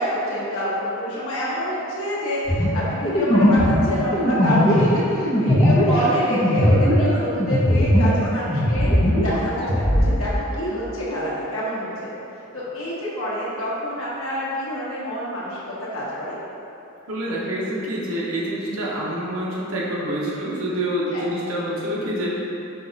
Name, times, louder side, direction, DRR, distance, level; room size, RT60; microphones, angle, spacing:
voice 1, 0.0-8.9 9.2-12.1 12.5-16.4 21.1-21.2, equal, 75° left, -7 dB, 1.2 m, -27 dB
sound 1, 2.5-8.2 8.5-10.1, equal, 30° left, 0.8 m, -18 dB
voice 2, 17.1-22.4, right 1 dB, 85° right, -5 dB, 0.9 m, -27 dB
5.5 x 2.4 x 3.8 m, 2.8 s
head